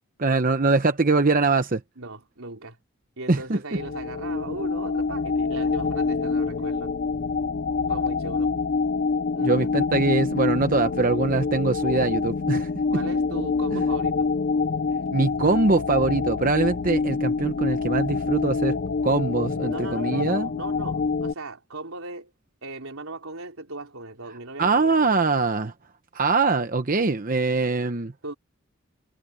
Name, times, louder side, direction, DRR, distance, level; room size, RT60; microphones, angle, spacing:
voice 1, 0.2-1.8 3.3-3.6 9.4-12.7 13.7-13.9 15.1-18.8 19.0-20.5 24.6-25.7 26.1-28.1, right 3 dB, 40° right, 0.9 m, -23 dB
voice 2, 2.0-2.8 3.2-6.9 7.8-8.5 9.4-10.1 12.9-14.3 19.7-22.3 22.6-25.2 28.2-28.3, right 2 dB, 85° right, 3.7 m, -38 dB
sound 1, 3.8-21.3, left 4 dB, 50° left, 0.5 m, -26 dB
head